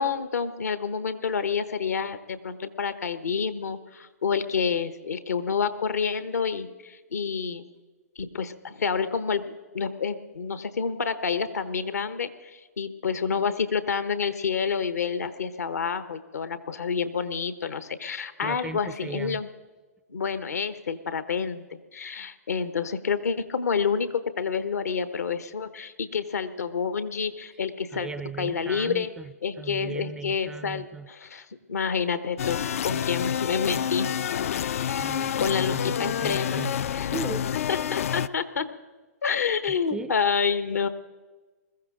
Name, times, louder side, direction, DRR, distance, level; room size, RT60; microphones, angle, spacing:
voice 1, 0.0-7.7 8.2-19.5 20.1-28.1 28.4-29.1 29.4-34.1 34.8-35.1 35.4-37.1 37.7-38.7 39.2-40.9, left 6 dB, 70° left, 12 dB, 1.1 m, -28 dB
voice 2, 18.4-19.4 27.9-31.1 35.0-36.7 37.0-37.5 39.7-40.2, right 5 dB, 10° right, 14 dB, 0.4 m, -37 dB
sound 1, 32.4-38.3, left 9 dB, 55° left, 0.4 m, -28 dB
21.5 x 14.5 x 3.8 m, 1.3 s
figure-of-eight pair, 120°, 9 cm